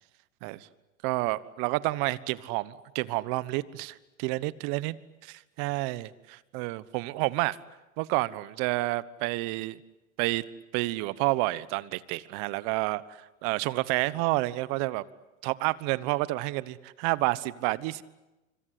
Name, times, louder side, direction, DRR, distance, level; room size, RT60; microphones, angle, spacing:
voice 1, 1.0-5.0 5.3-7.6 8.0-9.8 10.2-10.4 10.7-13.0 13.4-15.0 15.4-18.0, right 20 dB, 55° right, 18 dB, 1.3 m, -29 dB
25.5 x 25.5 x 8.4 m, 1.0 s
hypercardioid pair, 105°, 38 cm